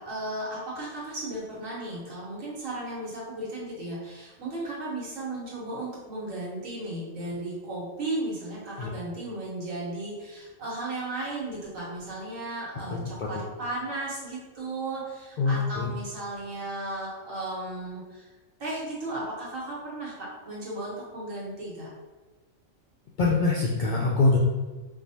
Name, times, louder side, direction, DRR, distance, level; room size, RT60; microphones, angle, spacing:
voice 1, 0.0-18.3 18.6-21.9, right 2 dB, 75° right, -5 dB, 1.6 m, -35 dB
voice 2, 15.4-15.9 23.2-24.4, left 3 dB, 80° left, -3 dB, 0.4 m, -23 dB
4.6 x 2.3 x 2.7 m, 1.2 s
omnidirectional pair, 1.4 m